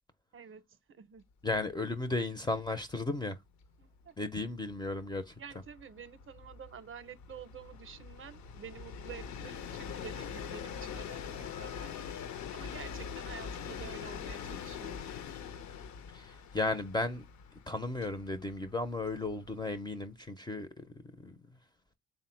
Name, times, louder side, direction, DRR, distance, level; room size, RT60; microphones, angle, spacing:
voice 1, 0.3-1.3 3.8-4.2 5.4-11.9 12.5-15.1, right 7 dB, 45° right, 0.5 m, -49 dB
voice 2, 1.4-3.4 4.2-5.3 16.1-17.2 17.7-20.9 21.2-21.3, left 2 dB, 15° left, 0.4 m, -35 dB
Train, 1.6-1.8 2.1-2.2 2.5-19.9, left 7 dB, 70° left, 0.6 m, -44 dB
3.6 x 2.1 x 4.2 m
cardioid pair, 90°, 30 cm